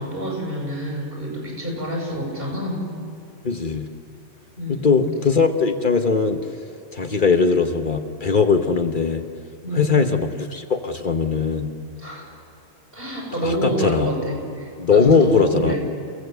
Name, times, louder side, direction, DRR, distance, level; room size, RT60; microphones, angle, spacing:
voice 1, 0.0-2.9 4.6-4.9 9.6-10.0 12.0-12.3 12.9-15.8, equal, 55° right, -2 dB, 7.2 m, -27 dB
voice 2, 3.4-3.9 4.7-6.4 6.9-9.2 9.7-11.7 13.3-14.1 14.8-15.8, left 5 dB, 50° left, 6 dB, 1.2 m, -20 dB
29.5 x 17.0 x 8.1 m, 2.5 s
omnidirectional pair, 1.1 m